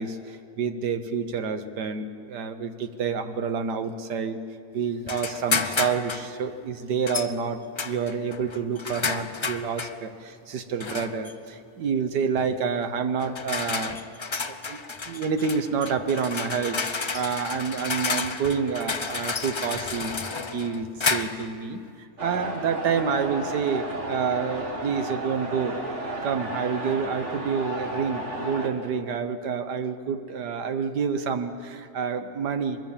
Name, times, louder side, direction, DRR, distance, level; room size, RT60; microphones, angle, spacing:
voice 1, 0.0-4.4 4.7-14.0 14.5-14.8 15.1-20.2 20.5-25.8 26.2-32.8, right 6 dB, 85° right, 9 dB, 1.7 m, -28 dB
sound 1, 5.1-6.3 7.1-7.3 7.8-10.0 10.8-11.3 12.4-12.6 13.2-21.5, left 4 dB, 45° left, 0.3 m, -31 dB
sound 2, 22.2-28.7, right 1 dB, 45° right, 2.4 m, -33 dB
23.5 x 21.5 x 7.4 m, 2.4 s
omnidirectional pair, 1.7 m